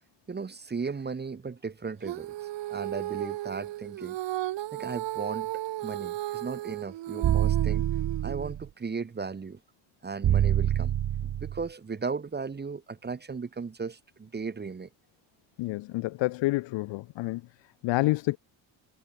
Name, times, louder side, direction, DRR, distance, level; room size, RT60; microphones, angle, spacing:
voice 1, 0.3-4.2 4.7-7.8 8.2-9.6 10.0-11.0 11.2-14.9, right 5 dB, 20° right, 1.6 m, -36 dB
Female singing, 2.0-8.5, right 15 dB, 60° right, 2.6 m, -35 dB
sound 1, 7.2-8.7 10.2-11.7, right 11 dB, 45° right, 1.4 m, -26 dB
voice 2, 15.6-17.4 17.8-18.4, left 19 dB, 65° left, 1.0 m, -28 dB
cardioid pair, 110°, 48 cm